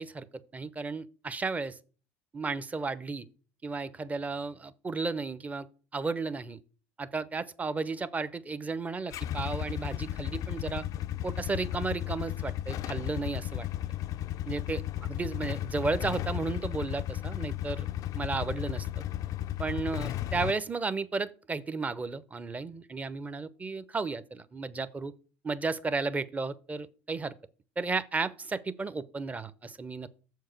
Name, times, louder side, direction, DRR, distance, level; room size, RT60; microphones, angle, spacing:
voice 1, 0.0-1.8 2.3-3.3 3.6-5.7 5.9-6.6 7.0-10.8 11.2-13.7 14.5-14.8 15.1-17.9 18.2-18.9 19.6-25.1 25.4-27.4 27.8-30.1, right 4 dB, 20° right, 0.7 m, -33 dB
Motorcycle / Engine starting / Idling, 9.1-20.5, left 12 dB, 55° left, 0.4 m, -34 dB
7.1 x 4.7 x 6.5 m
supercardioid pair, 80°, 7 cm